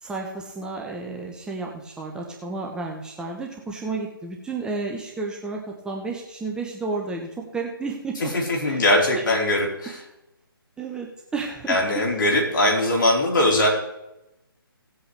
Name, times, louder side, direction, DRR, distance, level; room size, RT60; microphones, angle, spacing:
voice 1, 0.0-8.3 8.7-8.8 10.8-12.2, right 3 dB, 5° right, 0 dB, 0.9 m, -32 dB
voice 2, 8.2-10.0 11.7-13.7, left 1 dB, 55° left, -1 dB, 4.0 m, -21 dB
17.5 x 7.9 x 3.3 m, 0.88 s
figure-of-eight pair, 140°, 13 cm